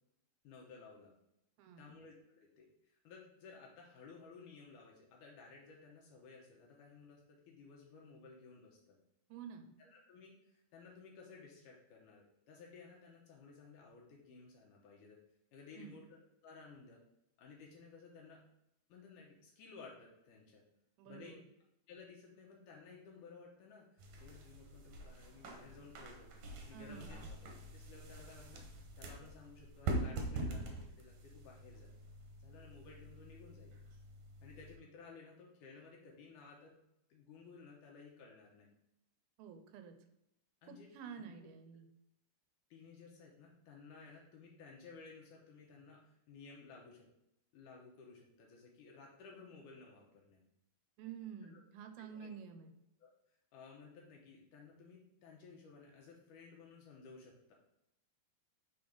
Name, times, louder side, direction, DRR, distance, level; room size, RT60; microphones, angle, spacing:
voice 1, 0.4-1.1 1.8-9.0 9.8-15.2 15.5-16.1 16.4-17.0 17.4-18.4 18.9-20.6 21.1-21.3 21.9-26.3 26.6-27.4 27.7-31.9 32.4-33.8 34.4-36.8 37.1-38.7 40.6-40.9 41.2-41.3 42.7-47.1 47.5-50.4 51.4-51.6 52.0-52.3 53.0-53.1 53.5-57.5, left 4 dB, 70° left, -1 dB, 2.2 m, -56 dB
voice 2, 1.6-1.9 9.3-9.7 15.8-16.0 21.0-21.5 26.7-27.3 39.4-40.0 40.7-41.9 51.0-52.7, right 7 dB, 85° right, 7 dB, 2.5 m, -50 dB
sound 1, 24.0-34.8, right 2 dB, 70° right, 1.8 m, -45 dB
7.0 x 3.7 x 5.2 m, 0.83 s
omnidirectional pair, 4.4 m